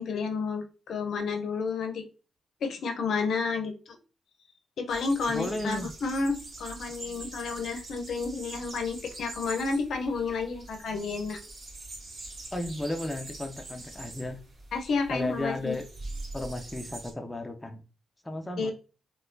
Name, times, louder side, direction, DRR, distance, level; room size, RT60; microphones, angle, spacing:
voice 1, 0.0-2.0 2.6-4.0 4.8-11.4 14.7-15.7 18.6-18.7, left 4 dB, 70° left, 5 dB, 0.6 m, -31 dB
sound 1, 4.9-17.1, right 2 dB, 55° right, 1.2 m, -44 dB
voice 2, 5.3-5.9 12.5-14.4 15.1-15.9 16.3-17.8 18.2-18.7, left 1 dB, 10° left, 5 dB, 0.5 m, -34 dB
4.1 x 2.2 x 2.6 m, 0.35 s
cardioid pair, 85°, 0 cm